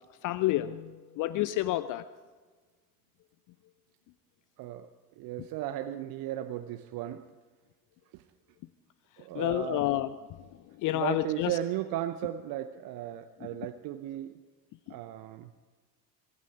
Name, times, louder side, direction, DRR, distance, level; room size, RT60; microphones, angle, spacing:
voice 1, 0.2-2.0 9.3-10.1 10.8-11.6, left 15 dB, 40° left, 15 dB, 0.6 m, -29 dB
voice 2, 4.6-4.9 5.2-7.3 8.1-8.2 9.2-9.9 10.9-14.4 14.9-15.5, right 12 dB, 45° right, 11 dB, 0.8 m, -36 dB
24.0 x 12.5 x 4.8 m, 1.4 s
figure-of-eight pair, 55°, 48 cm